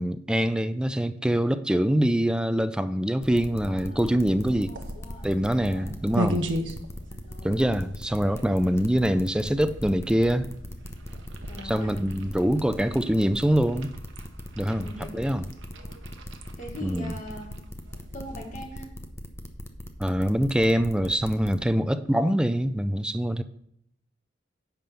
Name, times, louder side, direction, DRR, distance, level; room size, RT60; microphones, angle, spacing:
voice 1, 0.0-4.7 5.2-6.5 7.4-10.5 11.6-13.9 14.6-14.9 15.1-15.4 16.8-17.1 20.0-23.4, equal, 5° right, 11 dB, 0.4 m, -24 dB
sound 1, 3.2-21.6, equal, 15° left, 0.8 m, -39 dB
voice 2, 3.5-4.0 4.6-5.3 5.7-5.9 7.1-7.6 11.5-11.9 14.8-15.3 15.8-15.9 16.6-17.6 18.1-18.9, left 1 dB, 45° left, 2 dB, 1.9 m, -41 dB
sound 2, 4.4-18.9, equal, 90° right, 1.0 m, -38 dB
10.5 x 3.8 x 6.9 m, 0.74 s
head